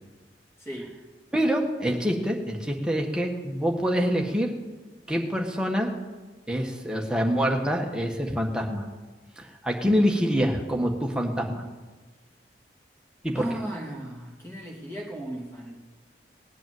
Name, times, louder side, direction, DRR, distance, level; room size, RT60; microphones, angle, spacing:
voice 1, 0.6-1.0 13.3-15.8, right 1 dB, 15° left, -2 dB, 2.8 m, -36 dB
voice 2, 1.3-4.5 5.1-5.9 6.5-8.9 9.4-11.6 13.2-13.5, equal, 5° right, 0 dB, 1.6 m, -26 dB
19.0 x 8.5 x 7.9 m, 1.3 s
head